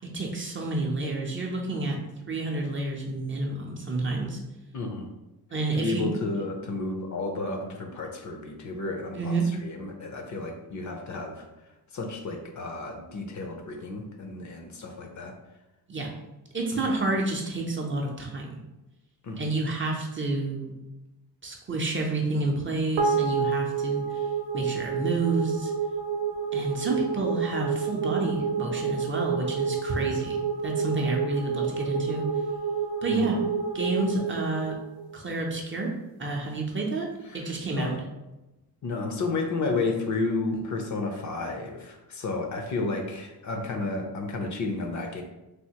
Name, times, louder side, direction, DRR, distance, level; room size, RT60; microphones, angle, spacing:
voice 1, 0.0-2.0 2.3-4.4 5.5-6.1 9.1-9.5 15.9-16.1 16.5-18.6 19.4-20.7 21.4-24.2 24.5-25.7 26.5-30.4 30.6-32.3 33.0-33.4 33.7-34.8 35.1-37.9, right 2 dB, 30° right, 0 dB, 0.5 m, -29 dB
voice 2, 4.7-5.1 5.7-11.5 11.9-15.4 16.7-16.8 19.2-19.5 33.1-33.3 37.3-38.0 38.8-45.2, left 3 dB, 45° left, 3 dB, 0.6 m, -32 dB
sound 1, 23.0-35.5, right 6 dB, 75° right, 0.7 m, -29 dB
3.4 x 2.5 x 2.8 m, 1.0 s
cardioid pair, 110°, 40 cm